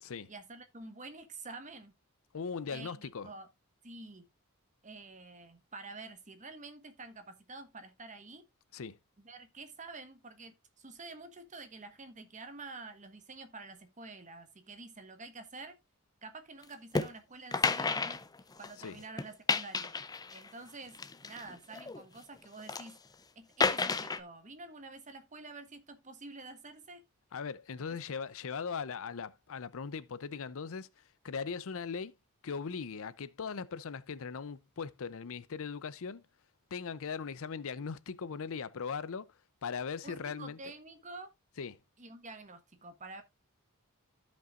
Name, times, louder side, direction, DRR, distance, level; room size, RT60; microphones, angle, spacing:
voice 1, 0.3-1.9 2.7-3.5 3.8-4.3 4.8-8.4 9.2-15.8 16.2-18.2 18.6-19.9 20.3-23.0 23.3-27.0 40.0-41.3 42.0-43.2, right 3 dB, 35° right, 1.3 m, -48 dB
voice 2, 2.3-3.3 8.7-9.0 18.8-19.0 27.3-32.1 32.4-36.2 36.7-39.3 39.6-40.6 41.6-41.8, left 5 dB, 65° left, 0.6 m, -39 dB
sound 1, 16.9-17.1 17.5-18.9 19.2-20.5 20.9-22.0 22.4-22.9 23.6-24.2, left 4 dB, 20° left, 0.5 m, -31 dB
15.0 x 5.4 x 2.5 m
head